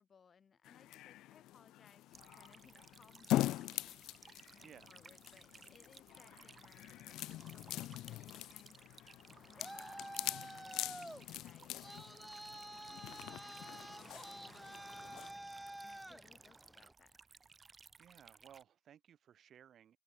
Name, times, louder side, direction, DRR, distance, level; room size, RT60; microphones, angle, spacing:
voice 1, 0.0-4.0 4.5-9.1 9.5-12.1 12.8-15.2 15.8-17.2, left 6 dB, 45° left, 4.9 m, -66 dB
sound 1, 0.7-15.3, left 15 dB, 90° left, 0.3 m, -43 dB
sound 2, 2.1-18.6, right 4 dB, 35° right, 1.5 m, -61 dB
voice 2, 4.6-4.9 18.0-20.0, right 9 dB, 65° right, 1.4 m, -60 dB
Traffic noise roadway noise, 9.2-16.9, right 1 dB, 5° right, 1.0 m, -50 dB
open air
cardioid pair, 90°, 0 cm